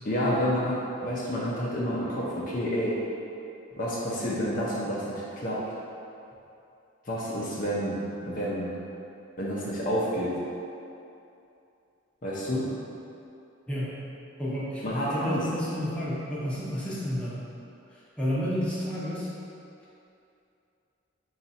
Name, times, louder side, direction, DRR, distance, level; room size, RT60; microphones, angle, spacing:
voice 1, 0.1-3.0 3.8-5.6 7.1-8.0 8.2-8.7 9.4-10.4 12.2-12.7 14.8-15.5, equal, 45° left, -6 dB, 0.6 m, -29 dB
voice 2, 13.7-14.0 14.4-17.4 18.2-19.3, equal, 5° left, -9 dB, 0.7 m, -31 dB
4.0 x 2.4 x 4.1 m, 2.7 s
head